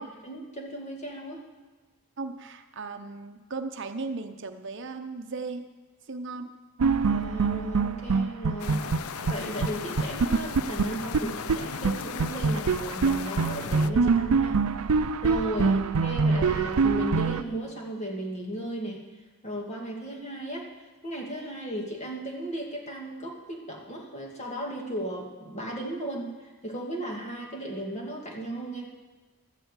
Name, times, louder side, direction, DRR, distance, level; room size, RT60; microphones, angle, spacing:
voice 1, 0.0-1.4 7.0-8.9 9.3-14.6 15.2-15.7 16.0-19.0 19.4-20.7 21.0-26.3 26.6-28.9, right 1 dB, 30° left, 0 dB, 2.1 m, -35 dB
voice 2, 2.2-5.7 6.1-6.5 15.5-15.8, right 3 dB, 55° right, 7 dB, 0.8 m, -36 dB
sound 1, 6.8-9.3 9.6-9.7 10.0-11.6 11.8-11.9 12.2-17.4, right 5 dB, 90° right, 0.5 m, -24 dB
sound 2, 8.6-13.9, left 7 dB, 75° left, 0.5 m, -37 dB
12.5 x 8.1 x 8.1 m, 1.3 s
head